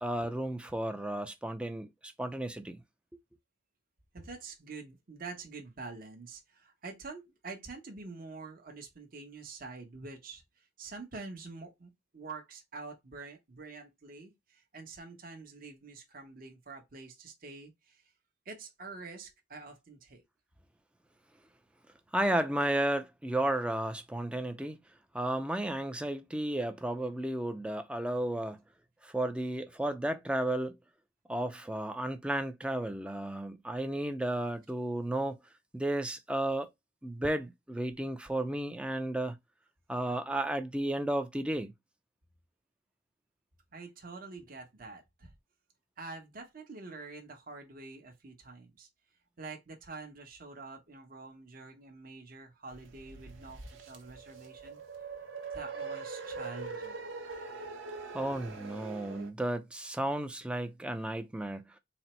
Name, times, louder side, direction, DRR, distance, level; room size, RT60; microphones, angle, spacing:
voice 1, 0.0-2.8 22.1-24.8 25.1-28.6 29.0-30.8 31.3-35.4 35.7-36.7 37.0-39.4 39.9-41.7 58.1-61.8, right 1 dB, 5° right, 0.4 m, -33 dB
voice 2, 4.1-18.0 18.4-20.2 43.7-45.3 46.0-48.9 49.4-54.8 55.5-57.1, right 3 dB, 50° right, 0.9 m, -46 dB
sound 1, 52.7-59.3, right 4 dB, 90° right, 0.8 m, -43 dB
4.1 x 2.0 x 4.2 m
head